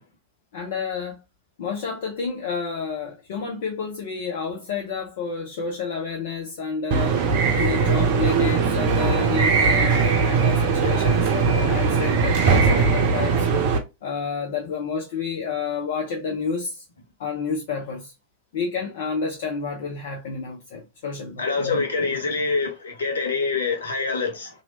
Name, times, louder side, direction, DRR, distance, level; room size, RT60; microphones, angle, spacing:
voice 1, 0.5-1.2 1.6-7.2 7.5-13.5 14.0-16.8 17.2-18.1 18.5-21.8, left 5 dB, 55° left, 0.6 m, -30 dB
sound 1, 6.9-13.8, right 5 dB, 50° right, 0.7 m, -20 dB
voice 2, 21.4-24.5, left 4 dB, 70° left, 1.0 m, -25 dB
2.9 x 2.7 x 2.8 m
figure-of-eight pair, 90°, 0 cm